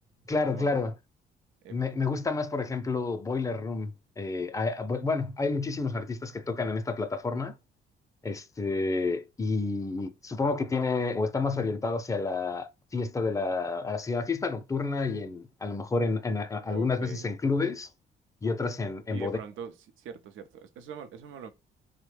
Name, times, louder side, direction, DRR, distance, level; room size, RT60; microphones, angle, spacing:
voice 1, 0.3-0.9 1.7-7.5 8.2-17.9 18.4-19.4, left 3 dB, 15° left, 0.4 m, -30 dB
voice 2, 16.6-17.3 19.1-21.5, right 7 dB, 80° right, 0.6 m, -43 dB
3.1 x 2.1 x 3.2 m
cardioid pair, 90°, 20 cm